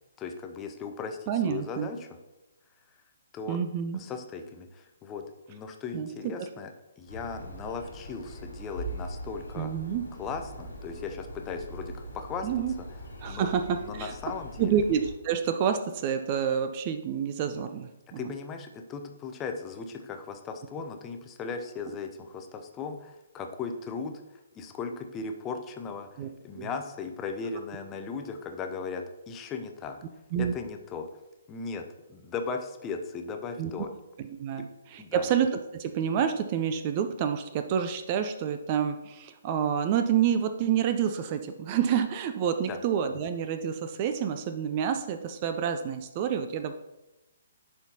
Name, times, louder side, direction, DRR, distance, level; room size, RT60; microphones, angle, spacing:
voice 1, 0.2-2.1 3.3-3.6 3.9-6.7 7.0-9.7 10.2-12.5 13.3-13.5 13.8-14.8 18.2-24.2 24.5-30.0 30.4-31.1 31.5-33.9 34.6-34.7 35.0-35.3 42.7-42.8, left 5 dB, 20° left, 5 dB, 0.6 m, -37 dB
voice 2, 1.3-1.9 3.5-4.0 5.9-6.1 6.4-6.5 9.6-10.0 12.4-12.7 13.2-14.1 14.6-18.2 26.2-26.3 26.6-26.7 30.3-30.5 33.6-33.7 34.4-46.7, right 8 dB, 30° right, 8 dB, 0.4 m, -28 dB
sound 1, 7.1-15.1, right 1 dB, 75° left, 1.5 m, -41 dB
10.5 x 4.3 x 2.8 m, 0.98 s
figure-of-eight pair, 130°, 0 cm